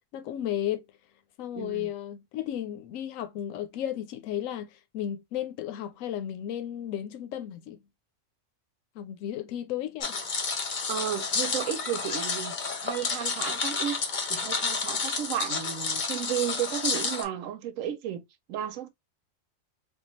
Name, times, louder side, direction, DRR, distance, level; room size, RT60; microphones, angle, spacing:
voice 1, 0.1-0.8 1.4-7.8 8.9-10.2, left 11 dB, 80° left, 1.0 m, -34 dB
voice 2, 1.6-1.9 10.9-12.5 12.8-14.0 14.3-18.2 18.5-18.9, right 10 dB, 80° right, 1.0 m, -33 dB
sound 1, 10.0-17.2, left 4 dB, 45° left, 0.7 m, -30 dB
3.5 x 2.3 x 2.9 m
omnidirectional pair, 1.4 m